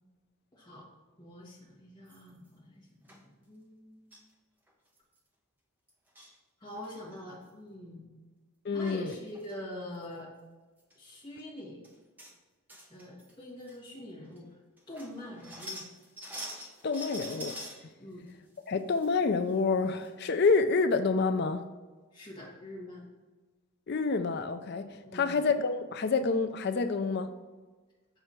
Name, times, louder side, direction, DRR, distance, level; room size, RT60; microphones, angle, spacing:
voice 1, 0.5-0.9 1.2-4.2 6.6-8.2 8.7-10.3 11.0-11.9 12.9-14.5 14.9-15.8 18.0-18.2 22.1-23.0 25.0-25.4, left 1 dB, 20° left, -6 dB, 1.7 m, -45 dB
sound 1, 2.1-2.5 3.1-3.2 4.1-4.3 4.7-4.8 5.0-5.2 5.9-6.4 6.7-7.2 8.9-9.0 9.3-9.5 9.9-10.0 10.8-10.9 11.4-11.5 11.8-12.3 12.7-13.3 13.7-13.8 14.4-14.5 14.8-17.8 18.3-19.2 19.5-19.6 20.0-20.1 20.4-20.6, equal, 10° right, 0.7 m, -45 dB
voice 2, 8.6-9.1 16.8-17.5 18.7-21.6 23.9-24.9 25.1-27.3, left 4 dB, 45° left, 8 dB, 0.4 m, -28 dB
6.8 x 4.7 x 4.3 m, 1.3 s
head